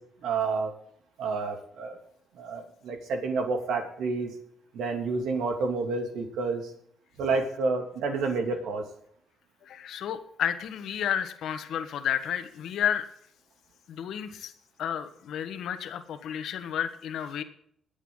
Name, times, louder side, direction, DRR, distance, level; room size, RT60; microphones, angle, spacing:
voice 1, 0.2-0.7 1.2-2.0 2.4-4.3 4.7-6.7 7.2-8.8, right 4 dB, 80° right, 4 dB, 2.8 m, -29 dB
voice 2, 9.6-13.1 13.9-14.5 14.8-17.4, left 9 dB, 75° left, 9 dB, 1.4 m, -31 dB
22.5 x 8.3 x 3.9 m, 0.67 s
cardioid pair, 90°, 0 cm